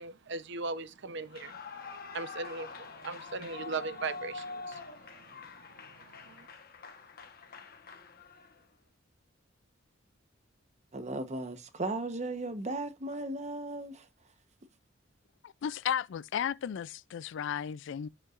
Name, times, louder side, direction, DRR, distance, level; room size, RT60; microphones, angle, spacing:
voice 1, 0.0-1.6 2.1-6.5, right 3 dB, 65° right, 0.8 m, -39 dB
Clapping / Cheering / Applause, 1.2-8.6, left 4 dB, 50° left, 1.2 m, -45 dB
voice 2, 10.9-14.1, right 2 dB, 35° right, 1.0 m, -36 dB
voice 3, 15.4-18.1, left 8 dB, 65° left, 0.3 m, -34 dB
15.5 x 5.5 x 2.5 m
head